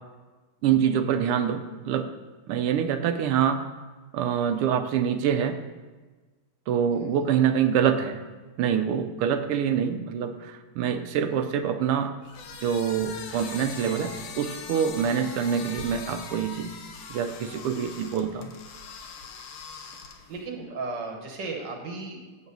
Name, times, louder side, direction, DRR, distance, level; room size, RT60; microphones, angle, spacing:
voice 1, 0.6-2.1 2.5-3.6 4.1-5.6 6.7-8.2 8.6-12.1 12.6-16.8 17.1-18.5, right 8 dB, 90° right, 9 dB, 1.6 m, -25 dB
voice 2, 6.9-7.2 20.3-22.5, right 3 dB, 60° right, 3 dB, 1.6 m, -36 dB
sound 1, 12.2-20.4, left 5 dB, 80° left, 1.8 m, -41 dB
8.0 x 6.9 x 5.3 m, 1.3 s
omnidirectional pair, 2.4 m